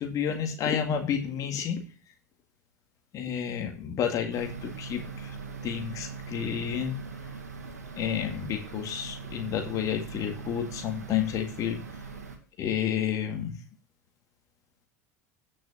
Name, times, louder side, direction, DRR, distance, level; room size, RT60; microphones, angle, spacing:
voice 1, 0.0-1.8 3.1-5.4 5.6-7.0 8.0-11.8 12.6-13.6, left 8 dB, 40° left, 4 dB, 2.2 m, -30 dB
sound 1, 4.3-12.4, right 5 dB, 80° right, 2.0 m, -41 dB
17.5 x 6.2 x 2.8 m, 0.38 s
figure-of-eight pair, 75°, 9 cm